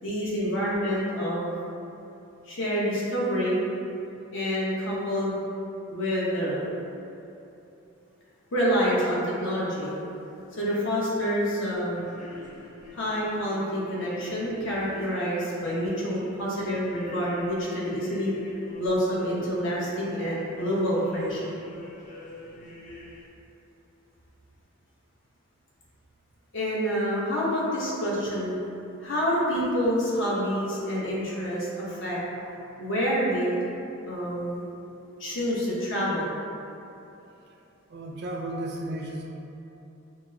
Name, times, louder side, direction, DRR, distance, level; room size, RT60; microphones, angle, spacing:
voice 1, 0.0-1.5 2.5-3.6 4.3-5.4 5.9-6.7 8.5-9.9 10.5-12.0 12.9-18.3 18.8-21.4 26.5-28.5 29.0-32.5 32.8-33.5 34.1-34.6 35.2-36.3, equal, 60° left, -6 dB, 0.9 m, -27 dB
sound 1, 10.0-23.3, left 2 dB, 35° left, 0.4 m, -45 dB
voice 2, 37.9-39.3, right 1 dB, 50° right, -1 dB, 0.4 m, -34 dB
5.8 x 2.1 x 2.7 m, 2.9 s
head